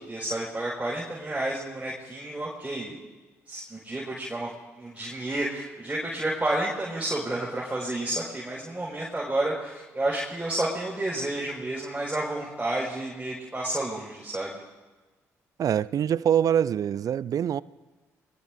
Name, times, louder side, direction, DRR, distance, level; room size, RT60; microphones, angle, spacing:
voice 1, 0.0-3.0 3.5-4.5 4.8-14.5, right 1 dB, 20° right, 5.4 m, -30 dB
voice 2, 15.6-17.6, right 9 dB, 55° right, 0.4 m, -24 dB
25.5 x 21.0 x 2.7 m
hypercardioid pair, 45°, 7 cm